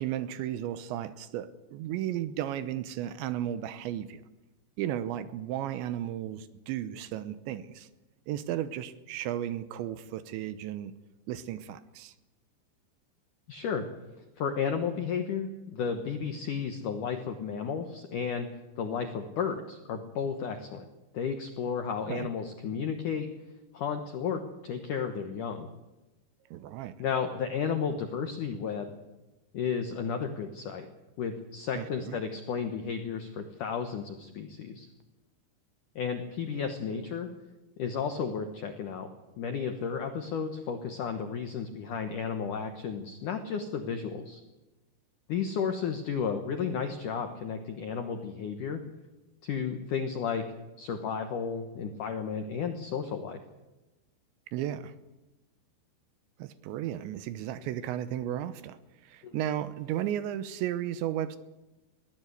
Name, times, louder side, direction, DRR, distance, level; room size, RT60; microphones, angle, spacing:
voice 1, 0.0-4.2 4.8-7.9 8.3-10.9 11.3-12.1 22.1-22.3 26.5-27.0 31.8-32.2 54.5-54.9 56.4-58.8 59.0-61.4, right 11 dB, 75° right, 13 dB, 3.0 m, -34 dB
voice 2, 13.5-13.8 14.4-18.5 18.8-20.9 21.1-23.3 23.7-25.7 27.0-28.9 29.5-30.9 31.2-34.9 36.0-37.3 37.8-39.1 39.4-44.4 45.3-48.8 49.4-50.4 50.8-53.4 59.2-59.4, left 6 dB, 75° left, 6 dB, 1.9 m, -33 dB
21.5 x 16.5 x 8.1 m, 1.1 s
omnidirectional pair, 5.5 m